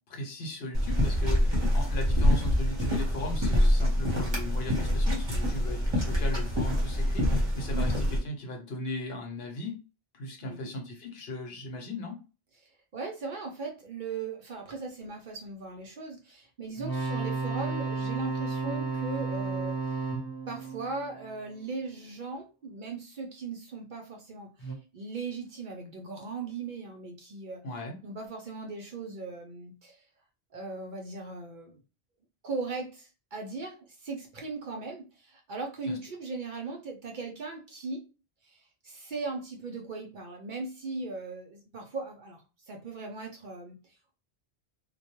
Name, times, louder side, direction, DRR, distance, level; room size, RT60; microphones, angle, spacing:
voice 1, 0.1-9.8 10.1-12.2 27.6-28.0 35.9-36.0, left 1 dB, 70° left, 2 dB, 1.0 m, -37 dB
sound 1, 0.7-8.2, equal, 25° right, 0.8 m, -26 dB
voice 2, 10.4-10.7 12.6-20.1 20.5-27.6 28.0-30.0 30.5-31.8 32.4-38.0 38.4-44.2, right 3 dB, 60° right, 2 dB, 0.6 m, -38 dB
sound 2, 16.8-21.8 24.6-24.7, right 4 dB, 25° left, 0.5 m, -33 dB
2.2 x 2.2 x 2.9 m, 0.33 s
omnidirectional pair, 1.1 m